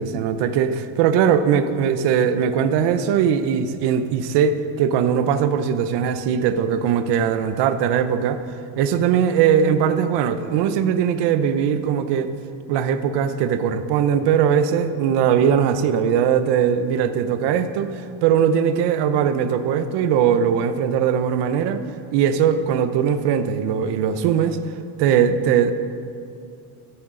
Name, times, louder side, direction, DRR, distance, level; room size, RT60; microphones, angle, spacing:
voice 1, 0.0-8.4 8.8-12.3 12.7-21.8 22.1-24.6 25.0-25.7, right 8 dB, 70° right, 11 dB, 0.8 m, -20 dB
14.5 x 9.5 x 3.8 m, 2.4 s
cardioid pair, 120°, 42 cm